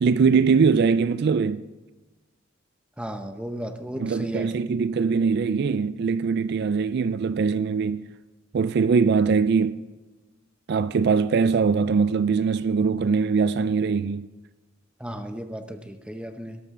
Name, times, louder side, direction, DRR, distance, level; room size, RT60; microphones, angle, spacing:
voice 1, 0.0-1.6 4.0-8.1 8.5-9.8 10.7-14.3, right 5 dB, 55° right, 0.3 m, -22 dB
voice 2, 3.0-4.5 15.0-16.6, equal, 5° right, 0.8 m, -34 dB
18.0 x 12.5 x 3.7 m
head